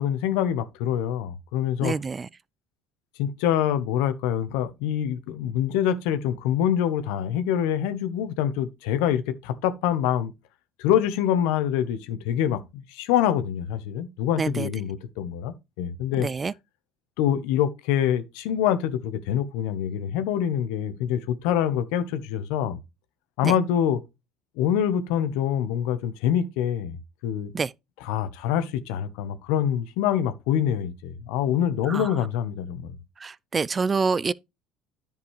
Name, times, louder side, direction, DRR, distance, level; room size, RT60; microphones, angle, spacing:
voice 1, 0.0-1.9 3.2-10.3 10.8-12.6 12.9-16.3 17.2-22.8 23.4-24.0 24.6-27.0 27.2-27.5 28.0-33.0, left 10 dB, 75° left, 1.0 m, -25 dB
voice 2, 1.8-2.3 14.4-14.7 16.2-16.5 23.4-23.5 27.5-27.7 31.9-32.1 33.2-34.3, right 4 dB, 30° right, 0.3 m, -26 dB
10.0 x 5.3 x 3.2 m
supercardioid pair, 80°, 0 cm